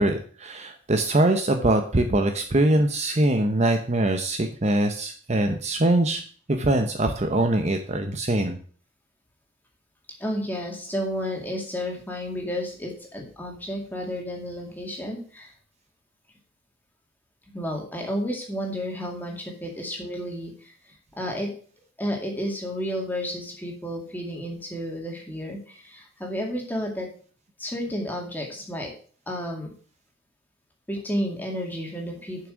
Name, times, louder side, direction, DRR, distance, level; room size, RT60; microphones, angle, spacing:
voice 1, 0.0-6.2 6.5-8.6, right 1 dB, 30° right, 6 dB, 0.8 m, -23 dB
voice 2, 10.2-15.5 17.5-20.7 21.2-21.5 22.0-27.1 27.6-28.9 29.3-29.7 30.9-32.5, equal, 10° left, 0 dB, 2.2 m, -31 dB
7.3 x 6.1 x 6.3 m, 0.43 s
head